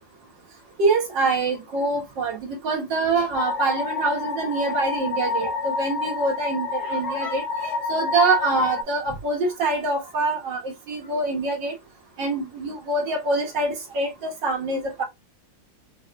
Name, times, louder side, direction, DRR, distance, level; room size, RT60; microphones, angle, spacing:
voice 1, 0.8-11.7 12.2-15.0, right 3 dB, 75° right, 1.6 m, -25 dB
sound 1, 3.3-8.8, left 4 dB, 75° left, 1.3 m, -28 dB
5.1 x 2.1 x 2.4 m
omnidirectional pair, 2.0 m